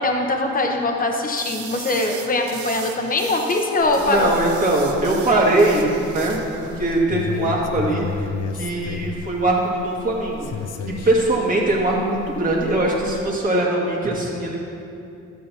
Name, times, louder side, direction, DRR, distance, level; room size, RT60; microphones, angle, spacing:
voice 1, 0.0-4.3, left 2 dB, 30° left, 2 dB, 1.0 m, -22 dB
sound 1, 1.3-7.0, right 8 dB, 75° right, 0.8 m, -38 dB
sound 2, 3.8-13.4, left 5 dB, 55° left, 0.7 m, -34 dB
voice 2, 4.0-8.3 8.5-10.5 10.9-14.6, right 2 dB, 25° right, -4 dB, 2.1 m, -21 dB
12.5 x 7.8 x 3.0 m, 2.7 s
cardioid pair, 90°, 30 cm